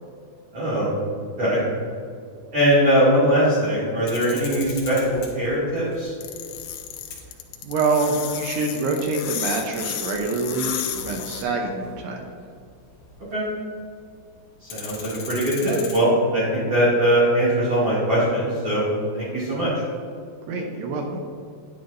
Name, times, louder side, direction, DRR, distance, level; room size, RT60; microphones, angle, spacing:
voice 1, 0.5-0.9 1.4-1.6 2.5-6.1 13.3-13.4 14.7-18.8 19.1-19.7, equal, 40° right, -9 dB, 2.5 m, -21 dB
sound 1, 4.1-13.6 13.9-14.0 14.3-16.0, left 5 dB, 65° left, 2.8 m, -40 dB
sound 2, 6.2-11.4, left 10 dB, 85° left, 3.0 m, -32 dB
voice 2, 7.6-12.3 20.5-21.2, right 3 dB, 85° right, 1 dB, 2.4 m, -26 dB
10.5 x 9.6 x 2.6 m, 2.3 s
omnidirectional pair, 5.9 m